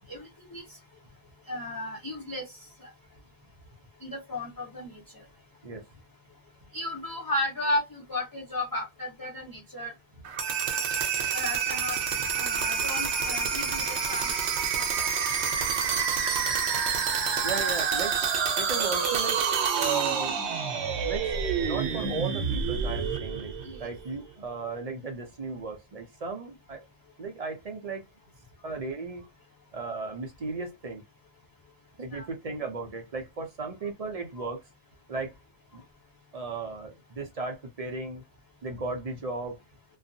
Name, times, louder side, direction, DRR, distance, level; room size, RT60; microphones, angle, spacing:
voice 1, 1.5-2.4 4.0-5.0 6.7-9.9 11.3-12.0 12.4-14.3 14.8-15.1 23.6-23.9 32.1-32.2, left 1 dB, 25° left, 0.6 m, -34 dB
sound 1, 10.2-24.1, right 6 dB, 80° right, 0.9 m, -28 dB
voice 2, 17.4-18.1 18.6-19.4 19.7-20.4 21.0-21.3 21.6-23.5 23.8-26.8 27.2-28.0 28.6-29.2 29.7-31.0 32.0-34.6 35.1-35.3 35.7-35.8 36.3-38.2 38.6-39.6, right 4 dB, 45° right, 0.5 m, -35 dB
2.5 x 2.3 x 2.6 m
omnidirectional pair, 1.1 m